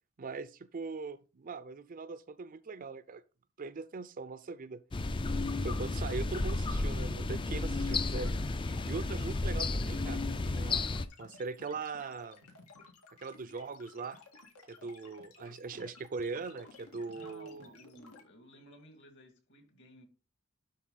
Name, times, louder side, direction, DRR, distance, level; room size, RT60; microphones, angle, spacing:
voice 1, 0.2-3.2 3.6-4.8 5.6-10.9 11.2-12.5 13.2-14.2 14.7-17.7, right 4 dB, 40° right, 0.4 m, -41 dB
sound 1, 4.9-11.1, left 2 dB, 25° left, 0.4 m, -32 dB
sound 2, 7.8-18.2, left 4 dB, 90° left, 2.0 m, -56 dB
voice 2, 17.1-20.1, equal, 55° left, 2.2 m, -56 dB
12.0 x 4.0 x 4.0 m
head